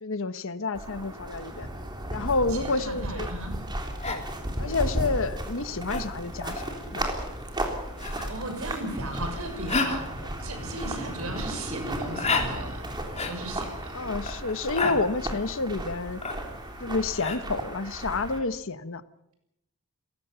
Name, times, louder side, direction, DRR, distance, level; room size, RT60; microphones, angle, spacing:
voice 1, 0.0-1.7 2.1-3.3 4.1-4.2 4.6-7.2 10.2-10.3 13.9-16.2 16.8-19.0, left 3 dB, 65° left, 12 dB, 1.2 m, -29 dB
sound 1, 0.7-18.4, right 1 dB, 20° right, 3.5 m, -35 dB
voice 2, 2.5-3.6 8.3-12.9 13.3-13.9, right 2 dB, 75° right, 6 dB, 6.3 m, -37 dB
sound 2, 3.4-17.4, left 3 dB, 30° left, 3.2 m, -35 dB
30.0 x 16.5 x 7.0 m, 0.81 s
head